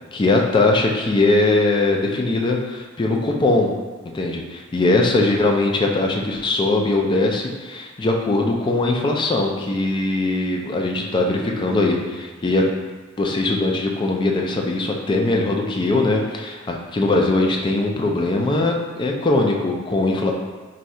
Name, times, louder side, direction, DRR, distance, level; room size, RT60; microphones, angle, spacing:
voice 1, 0.1-3.7 4.1-12.7 13.2-20.3, left 2 dB, 20° left, 1 dB, 0.3 m, -20 dB
2.6 x 2.3 x 4.1 m, 1.3 s
head